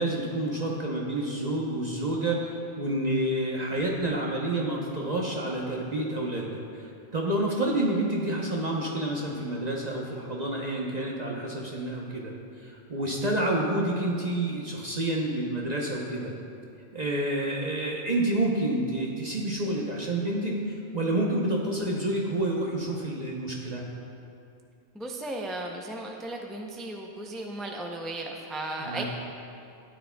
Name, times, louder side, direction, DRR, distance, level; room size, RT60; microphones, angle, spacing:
voice 1, 0.0-16.3 16.9-23.8 28.8-29.0, right 1 dB, 40° right, -3 dB, 0.9 m, -29 dB
voice 2, 24.9-29.0, right 2 dB, ahead, 0 dB, 0.3 m, -35 dB
13.0 x 9.6 x 2.3 m, 2.5 s
omnidirectional pair, 1.2 m